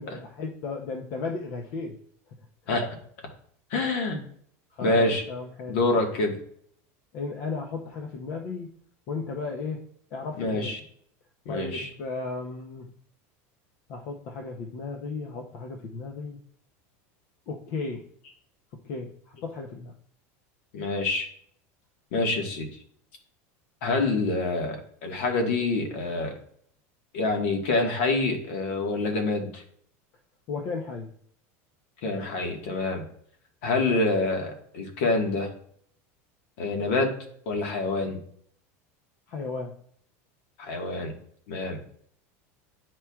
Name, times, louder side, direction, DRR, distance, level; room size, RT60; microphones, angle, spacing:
voice 1, 0.0-2.0 4.7-5.8 7.1-8.7 9.1-9.8 10.1-10.7 11.5-12.9 13.9-16.4 17.5-18.1 18.8-19.9 30.5-31.1 39.3-39.8, left 4 dB, 40° left, 2 dB, 0.6 m, -35 dB
voice 2, 3.7-4.2 4.8-5.2 5.7-6.4 10.4-10.8 11.4-11.9 20.7-21.3 22.1-22.7 23.8-24.8 25.0-26.3 27.1-29.6 32.0-33.0 33.6-35.5 36.6-37.1 37.4-38.2 40.6-41.1 41.5-41.8, left 2 dB, 60° left, 3 dB, 1.4 m, -26 dB
9.9 x 4.4 x 2.3 m, 0.63 s
supercardioid pair, 175°, 8 cm